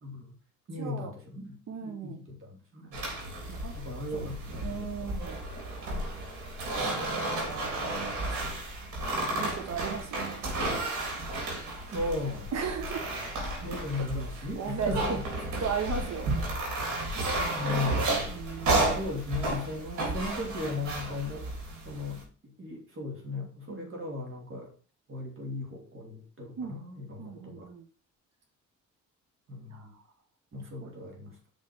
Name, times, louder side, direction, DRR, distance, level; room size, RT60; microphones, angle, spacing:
voice 1, 0.0-0.3 0.7-1.6 1.8-3.0 3.7-5.2 11.9-12.5 13.6-15.6 17.5-18.3 18.9-21.5 21.8-22.3 22.6-24.7 25.1-27.7 29.5-29.9 30.5-31.3, left 2 dB, 45° right, 0 dB, 3.0 m, -37 dB
voice 2, 0.8-1.1 1.7-2.3 3.6-3.7 4.1-4.3 4.6-5.4 7.3-8.2 9.4-10.2 12.5-13.0 14.0-14.1 14.4-14.9 15.6-16.3 18.3-19.1 19.8-19.9 23.7-24.0 26.6-26.8 27.2-27.8 29.7-29.9 30.8-30.9, right 6 dB, 60° right, 5 dB, 1.4 m, -36 dB
sound 1, 2.9-22.2, right 2 dB, 80° right, 3.6 m, -32 dB
6.2 x 5.4 x 4.9 m, 0.41 s
cardioid pair, 90°, 30 cm